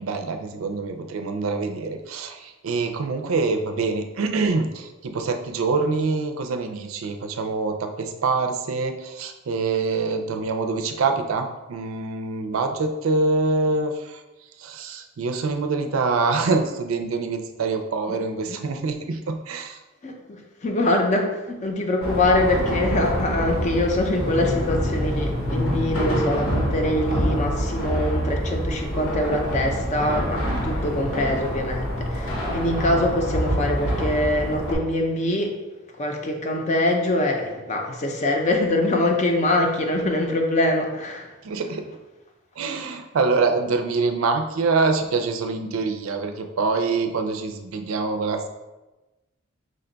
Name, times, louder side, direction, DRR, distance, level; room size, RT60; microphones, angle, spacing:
voice 1, 0.0-14.2 14.6-19.8 41.4-41.8 42.6-48.5, right 4 dB, 80° right, 5 dB, 0.4 m, -25 dB
voice 2, 20.6-35.5 36.0-41.3, left 1 dB, 35° left, 2 dB, 0.5 m, -24 dB
sound 1, 22.0-34.7, equal, 80° left, 1.0 m, -26 dB
5.0 x 2.2 x 3.8 m, 1.1 s
head